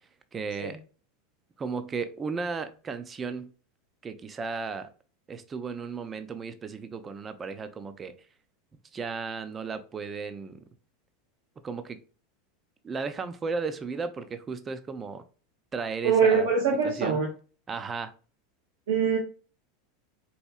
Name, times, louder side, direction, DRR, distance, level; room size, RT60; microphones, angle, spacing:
voice 1, 0.3-0.8 1.6-3.5 4.0-4.9 5.3-8.1 8.9-10.6 11.6-12.0 12.8-15.2 15.7-16.5 16.8-17.2 17.7-18.1, right 4 dB, 25° right, 0.4 m, -34 dB
voice 2, 16.0-17.3 18.9-19.2, right 6 dB, 75° right, 0.9 m, -23 dB
4.2 x 2.6 x 2.3 m
supercardioid pair, 115°, 0 cm